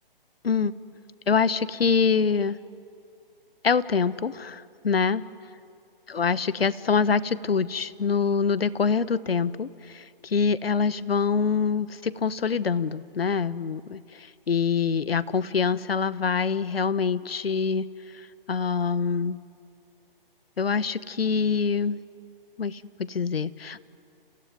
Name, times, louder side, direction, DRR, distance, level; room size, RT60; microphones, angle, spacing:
voice 1, 1.3-2.6 3.6-5.2 6.1-17.9 18.5-19.4 20.6-22.0 22.6-23.8, left 5 dB, 85° left, 17 dB, 1.0 m, -25 dB
30.0 x 17.0 x 9.7 m, 2.4 s
hypercardioid pair, 155°, 29 cm